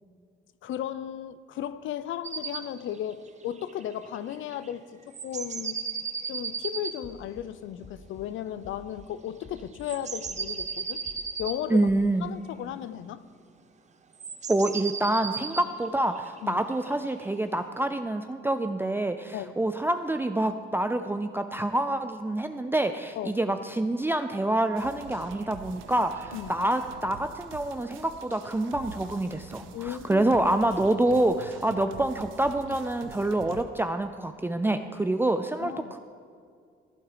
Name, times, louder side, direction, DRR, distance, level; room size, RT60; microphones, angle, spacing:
voice 1, 0.6-5.8 6.3-11.0 11.4-11.9 12.2-13.2 16.4-16.6 19.3-19.5 23.2-23.4 26.3-26.6 29.7-30.3 31.7-31.8 35.6-35.9, left 10 dB, 80° left, 14 dB, 0.6 m, -35 dB
sound 1, 2.2-2.7 2.9-3.0 3.3-3.4 3.6-4.7 5.1-7.0 9.6-11.6 14.2-17.2, right 5 dB, 35° right, 1.0 m, -35 dB
sound 2, 7.0-7.4 7.8-8.3 8.6-9.1 9.4-9.9 10.2-10.7 11.1-11.5 11.9-12.1, left 3 dB, 40° left, 1.2 m, -49 dB
voice 2, 11.7-12.3 14.5-36.0, right 1 dB, 10° right, 8 dB, 0.5 m, -27 dB
sound 3, 24.8-33.6, right 7 dB, 90° right, 0.7 m, -46 dB
15.0 x 8.7 x 5.0 m, 2.2 s
cardioid pair, 90°, 20 cm